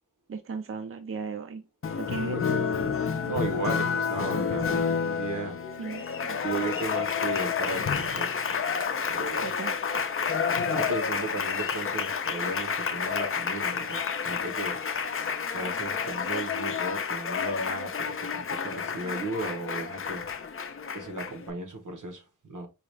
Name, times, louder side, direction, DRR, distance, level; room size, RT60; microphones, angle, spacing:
voice 1, 0.3-1.7 2.0-2.6 5.8-6.4 9.4-9.8, right 5 dB, 45° right, 0.5 m, -36 dB
Applause, 1.8-21.5, left 6 dB, 45° left, 0.5 m, -30 dB
voice 2, 2.3-2.9 3.2-5.6 6.4-8.3 9.1-9.6 9.9-10.0 10.7-14.8 15.5-20.2 20.9-22.7, right 3 dB, 80° right, 1.2 m, -35 dB
4.9 x 2.3 x 3.3 m
wide cardioid pair, 95°, 31 cm